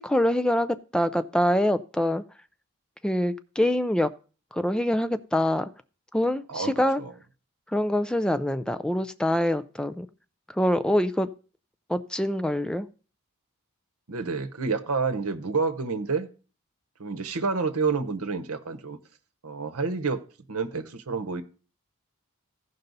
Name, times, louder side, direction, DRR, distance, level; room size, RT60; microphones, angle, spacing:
voice 1, 0.0-2.2 3.0-4.1 4.5-5.7 6.1-7.0 7.7-10.1 10.5-11.3 11.9-12.9, left 1 dB, 5° left, 0.4 m, -25 dB
voice 2, 6.5-7.1 14.1-16.3 17.0-19.0 19.4-20.2 20.5-21.4, right 4 dB, 80° right, 0.9 m, -29 dB
15.5 x 5.4 x 4.0 m
head